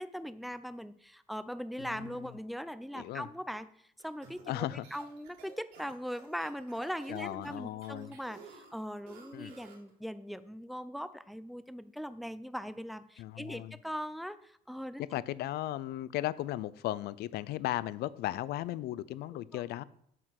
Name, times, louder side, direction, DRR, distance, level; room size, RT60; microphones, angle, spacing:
voice 1, 0.0-3.7 4.0-15.0 19.5-19.6, equal, ahead, 0.6 m, -40 dB
voice 2, 1.8-2.3 3.0-3.3 4.5-4.9 7.1-8.1 9.3-9.5 13.2-13.7 15.1-19.8, left 14 dB, 70° left, 0.5 m, -36 dB
sound 1, 4.0-9.9, right 5 dB, 85° right, 3.2 m, -55 dB
9.1 x 5.9 x 6.5 m
cardioid pair, 110°, 17 cm